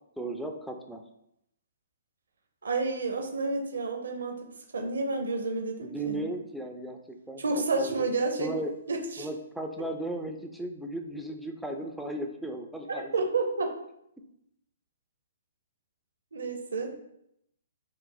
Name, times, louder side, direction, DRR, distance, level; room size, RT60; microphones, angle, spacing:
voice 1, 0.2-1.0 5.8-7.4 7.8-8.1 8.4-8.7 9.2-13.1, right 1 dB, ahead, 2 dB, 0.3 m, -36 dB
voice 2, 2.6-4.4 4.7-6.3 7.4-8.5 8.9-9.3 12.9-13.7 16.3-16.9, right 3 dB, 70° right, 3 dB, 0.6 m, -30 dB
2.5 x 2.5 x 3.7 m, 0.78 s
figure-of-eight pair, 125°, 0 cm